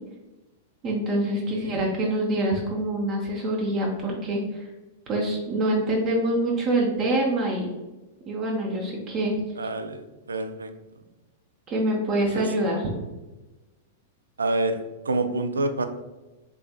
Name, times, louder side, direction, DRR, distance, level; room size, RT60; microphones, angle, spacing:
voice 1, 0.8-4.7 5.1-7.7 8.3-9.4 11.7-12.8, right 1 dB, 35° right, -1 dB, 0.7 m, -25 dB
voice 2, 1.5-1.8 9.6-10.0 10.3-10.7 12.2-12.4 14.4-15.9, right 2 dB, 75° right, 8 dB, 0.3 m, -27 dB
3.6 x 3.4 x 2.2 m, 1.1 s
figure-of-eight pair, 100°, 0 cm